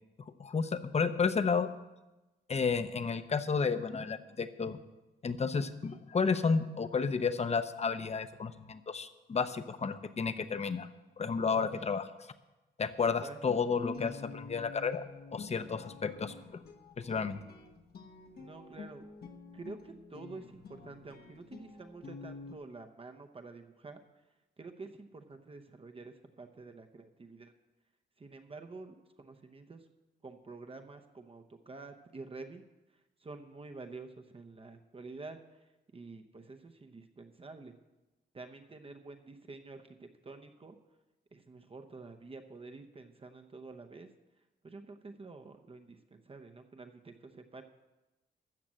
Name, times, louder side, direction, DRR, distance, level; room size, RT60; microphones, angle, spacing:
voice 1, 0.4-1.7 2.5-4.8 5.2-10.9 11.2-12.1 12.8-16.4 17.0-17.4, left 5 dB, 35° left, 11 dB, 0.8 m, -32 dB
Guitar, 13.5-22.6, left 4 dB, 60° left, 1.2 m, -50 dB
voice 2, 18.3-19.0 19.5-24.0 24.6-27.5 28.2-29.8 30.2-32.6 33.2-35.4 35.9-37.7 38.3-40.8 41.3-44.1 44.6-47.6, right 3 dB, 30° right, 5 dB, 0.8 m, -48 dB
13.5 x 5.9 x 7.6 m, 1.1 s
cardioid pair, 90°, 18 cm